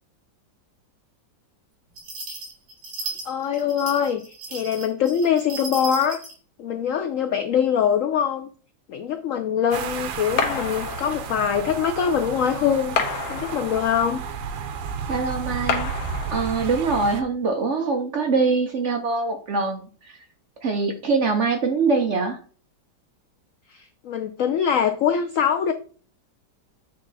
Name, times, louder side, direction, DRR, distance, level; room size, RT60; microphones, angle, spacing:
sound 1, 2.0-6.4, right 3 dB, 70° right, 3.1 m, -35 dB
voice 1, 3.3-4.2 4.5-6.2 6.6-8.5 8.9-13.0 13.3-14.2 23.7-25.7, left 8 dB, 85° left, 7 dB, 0.7 m, -23 dB
sound 2, 9.7-17.2, right 6 dB, 90° right, 1.6 m, -32 dB
sound 3, 10.4-11.5 13.0-14.1 15.7-16.7, left 6 dB, 65° left, 1.5 m, -29 dB
voice 2, 15.1-15.9 16.3-20.2 20.6-22.4, right 4 dB, 55° right, 4 dB, 0.9 m, -23 dB
8.4 x 3.5 x 4.0 m, 0.41 s
omnidirectional pair, 2.0 m